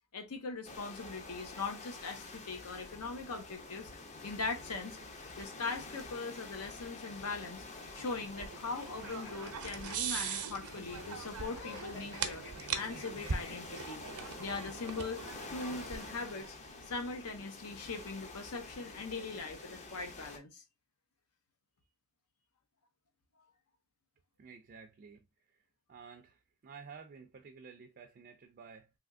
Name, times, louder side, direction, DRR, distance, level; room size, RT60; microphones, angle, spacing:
voice 1, 0.1-3.9 4.2-5.0 5.4-7.6 7.9-12.5 12.7-14.0 14.4-15.2 15.5-16.6 16.8-20.6, left 4 dB, 85° left, 0.8 m, -40 dB
sound 1, 0.6-20.4, left 3 dB, 30° left, 0.5 m, -48 dB
sound 2, 7.9-16.5, right 6 dB, 85° right, 0.6 m, -41 dB
sound 3, 9.0-13.7 14.9-16.6, left 3 dB, 50° left, 1.9 m, -52 dB
voice 2, 24.4-25.6 25.9-28.9, right 5 dB, 40° right, 0.3 m, -53 dB
3.4 x 2.7 x 2.5 m
head